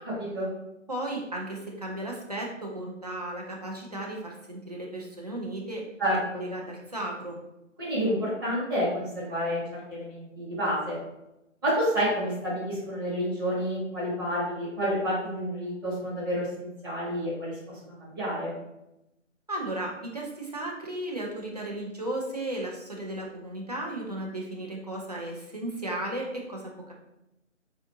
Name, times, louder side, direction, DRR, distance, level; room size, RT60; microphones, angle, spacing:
voice 1, 0.0-0.5 6.0-6.4 7.8-9.6 9.9-11.0 11.6-17.7 18.0-18.5, equal, 15° right, -9 dB, 1.0 m, -29 dB
voice 2, 0.9-5.8 6.3-7.4 19.5-26.9, right 1 dB, 35° right, -1 dB, 0.4 m, -35 dB
3.6 x 2.4 x 2.7 m, 0.90 s
figure-of-eight pair, 150°, 38 cm